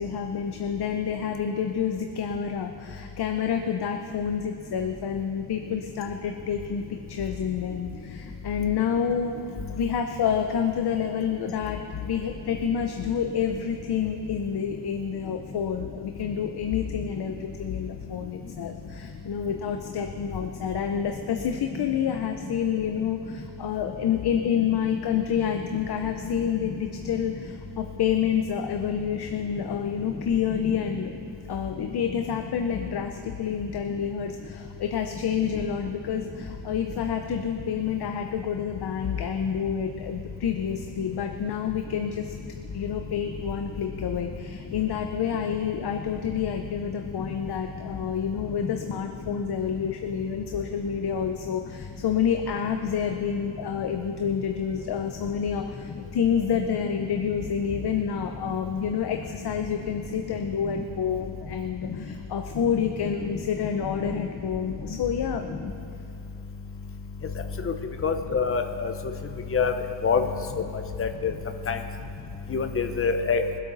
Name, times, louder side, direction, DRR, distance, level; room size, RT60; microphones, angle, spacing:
voice 1, 0.0-9.3 9.7-31.1 31.5-42.3 42.7-65.4, left 7 dB, 55° left, 5 dB, 0.8 m, -28 dB
voice 2, 68.0-68.9 69.5-69.7 70.0-70.2 71.0-71.3 71.7-71.8 72.5-73.4, left 5 dB, 30° left, 6 dB, 0.9 m, -25 dB
22.5 x 8.4 x 4.1 m, 2.7 s
wide cardioid pair, 115°, 46 cm